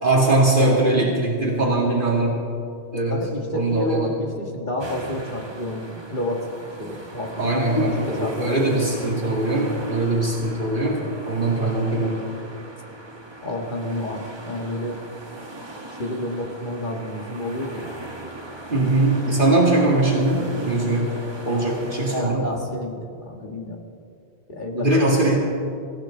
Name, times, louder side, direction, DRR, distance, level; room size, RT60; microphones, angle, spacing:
voice 1, 0.0-2.4 2.9-3.2 3.5-4.1 7.4-12.2 18.7-21.1 21.4-22.5 24.8-25.4, right 2 dB, 50° right, -3 dB, 2.4 m, -21 dB
voice 2, 0.6-1.2 3.1-6.5 6.8-8.7 13.4-15.0 16.0-17.9 21.4-21.7 22.1-23.8 24.5-25.0, left 1 dB, 45° left, 1 dB, 1.8 m, -29 dB
sound 1, 4.8-22.2, right 2 dB, 25° right, 1.4 m, -39 dB
25.0 x 15.0 x 3.8 m, 2.5 s
omnidirectional pair, 1.1 m